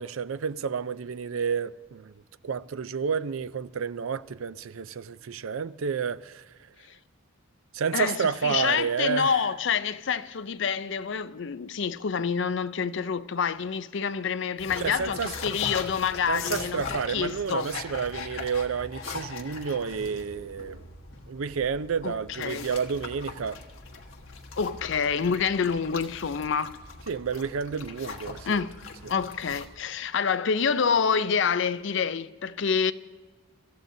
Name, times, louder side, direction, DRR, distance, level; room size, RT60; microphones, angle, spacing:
voice 1, 0.0-2.1 2.4-6.4 7.7-9.3 14.8-15.3 16.3-20.8 21.3-23.6 27.1-28.6, right 6 dB, 90° right, 0.5 m, -30 dB
voice 2, 7.9-17.7 22.0-22.7 24.6-26.7 28.5-28.8 29.1-32.9, left 6 dB, 65° left, 0.5 m, -27 dB
sound 1, 14.6-29.7, left 4 dB, 80° left, 1.4 m, -40 dB
25.5 x 14.5 x 2.7 m
head